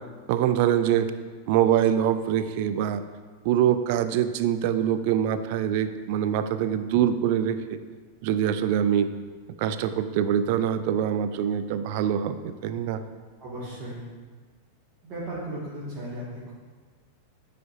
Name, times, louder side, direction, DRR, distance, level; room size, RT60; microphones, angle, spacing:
voice 1, 0.3-1.1 1.5-3.0 3.4-7.6 8.2-9.1 9.6-13.0, right 10 dB, 50° right, 11 dB, 0.4 m, -24 dB
voice 2, 13.4-14.0 15.0-16.5, right 1 dB, 30° right, -9 dB, 1.9 m, -36 dB
9.3 x 5.0 x 2.6 m, 1.5 s
figure-of-eight pair, 90°, 0 cm